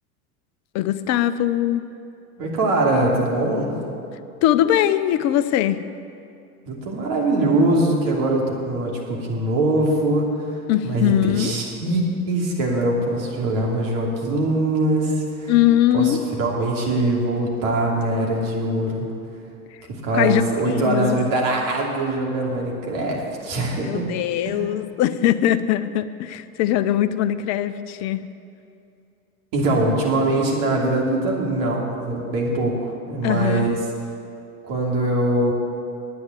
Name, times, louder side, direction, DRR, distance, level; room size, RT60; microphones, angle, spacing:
voice 1, 0.7-1.9 4.4-5.8 10.7-11.6 15.5-16.2 20.1-21.2 23.8-28.3 33.2-33.7, left 12 dB, 40° left, 13 dB, 0.6 m, -21 dB
voice 2, 2.4-3.7 6.6-10.6 10.8-15.5 15.9-19.1 19.9-24.1 24.5-24.6 29.5-33.8 34.6-35.5, right 2 dB, 45° right, -1 dB, 2.9 m, -22 dB
9.6 x 9.5 x 7.9 m, 2.6 s
hypercardioid pair, 85°, 44 cm